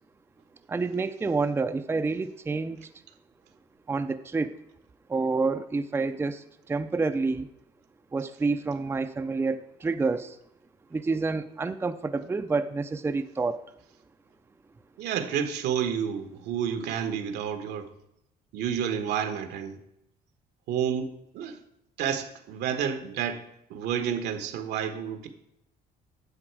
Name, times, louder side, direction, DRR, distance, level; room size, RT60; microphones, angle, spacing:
voice 1, 0.7-2.9 3.9-4.5 5.1-7.5 8.1-10.4 10.9-13.7, right 4 dB, 15° right, 0.4 m, -28 dB
voice 2, 15.0-17.9 18.5-19.8 20.7-21.6 22.0-25.3, right 8 dB, 80° right, 1.2 m, -30 dB
9.9 x 7.1 x 4.7 m
cardioid pair, 110°, 17 cm